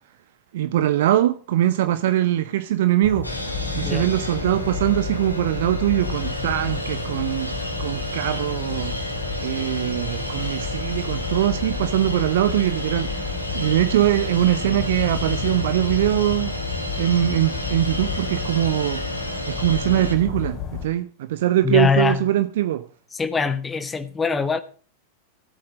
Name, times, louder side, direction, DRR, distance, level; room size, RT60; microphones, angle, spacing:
voice 1, 0.5-3.3 3.7-7.5 7.8-9.0 9.4-16.5 17.0-19.0 19.5-22.8, right 13 dB, 55° right, 0.9 m, -22 dB
sound 1, 3.0-20.9, left 7 dB, 35° left, 5.1 m, -31 dB
sound 2, 3.2-20.2, equal, 85° left, 2.5 m, -32 dB
voice 2, 21.6-22.2 23.1-24.6, left 5 dB, 15° left, 1.4 m, -22 dB
16.0 x 8.7 x 6.2 m
figure-of-eight pair, 90°, 0 cm